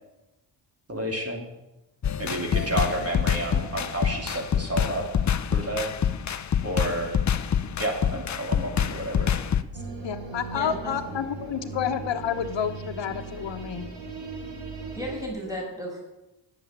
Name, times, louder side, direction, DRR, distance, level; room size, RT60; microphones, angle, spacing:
voice 1, 0.9-1.5 2.2-5.0 5.5-5.9 6.6-7.1 7.8-9.3, right 1 dB, 35° right, 2 dB, 3.0 m, -30 dB
sound 1, 2.0-9.6, left 8 dB, 40° left, 0.7 m, -26 dB
sound 2, 9.7-15.3, right 4 dB, 60° right, 4.1 m, -38 dB
voice 2, 10.0-13.9, left 8 dB, 75° left, 9 dB, 1.1 m, -29 dB
voice 3, 10.5-11.2 15.0-16.0, equal, 10° right, -2 dB, 6.1 m, -35 dB
18.5 x 7.2 x 8.7 m, 1.0 s
wide cardioid pair, 120°, 43 cm